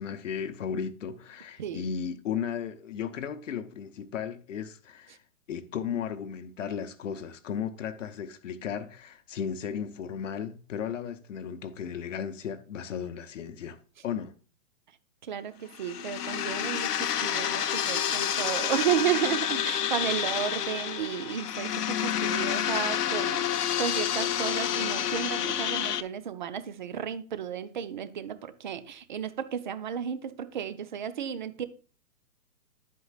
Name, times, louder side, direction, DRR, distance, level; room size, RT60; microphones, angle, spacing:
voice 1, 0.0-5.2 5.5-13.8 14.0-14.3, left 7 dB, 55° left, 0.8 m, -35 dB
voice 2, 15.2-31.6, right 9 dB, 35° right, 0.5 m, -33 dB
sound 1, 15.7-26.0, left 10 dB, 80° left, 0.9 m, -29 dB
11.0 x 8.3 x 2.4 m
hypercardioid pair, 155°, 46 cm